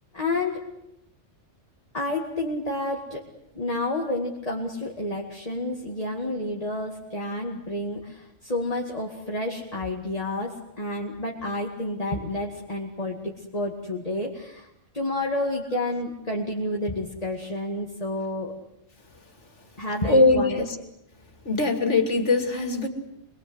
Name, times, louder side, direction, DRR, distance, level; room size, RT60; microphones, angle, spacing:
voice 1, 0.1-0.6 1.9-3.2 3.5-14.7 14.9-18.6 19.8-20.6, left 1 dB, 30° left, -1 dB, 2.3 m, -30 dB
voice 2, 20.0-20.6 21.4-22.9, left 3 dB, 70° left, 5 dB, 3.0 m, -21 dB
26.0 x 22.0 x 8.0 m, 0.84 s
omnidirectional pair, 1.3 m